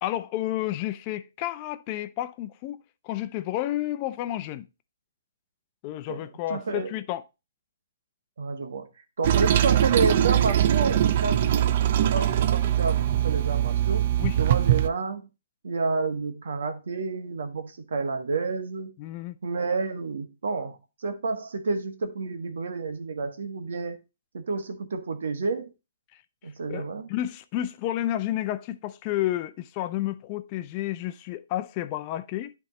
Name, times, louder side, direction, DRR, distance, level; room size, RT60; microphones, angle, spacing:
voice 1, 0.0-2.8 3.0-4.6 5.8-7.2 14.2-14.4 19.0-19.4 26.7-32.5, left 14 dB, 35° left, 0.6 m, -31 dB
voice 2, 6.1-6.9 8.4-8.9 9.2-14.0 14.4-15.3 15.6-18.9 19.4-24.0 24.3-25.7 26.4-27.1, right 4 dB, 75° right, 1.5 m, -30 dB
Toilet flush, 9.2-14.9, right 11 dB, 50° right, 0.6 m, -22 dB
10.5 x 3.6 x 4.1 m
hypercardioid pair, 145°, 0 cm